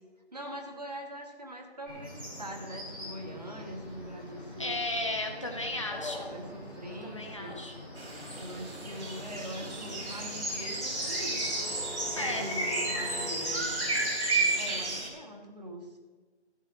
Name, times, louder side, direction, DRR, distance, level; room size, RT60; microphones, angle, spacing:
voice 1, 0.3-2.1 2.4-4.8 6.3-7.7 8.3-11.4 12.2-13.8 14.3-15.9, right 1 dB, 35° right, 3 dB, 1.3 m, -42 dB
sound 1, 1.8-14.0, equal, 10° right, 1.7 m, -42 dB
voice 2, 4.6-6.3 7.0-7.7 12.2-12.5, left 2 dB, 25° left, 2 dB, 1.0 m, -34 dB
sound 2, 5.8-13.3, left 2 dB, 45° left, 2.1 m, -45 dB
sound 3, 8.0-15.1, right 2 dB, 70° right, 3.2 m, -33 dB
14.5 x 5.5 x 6.1 m, 1.3 s
figure-of-eight pair, 180°, 34 cm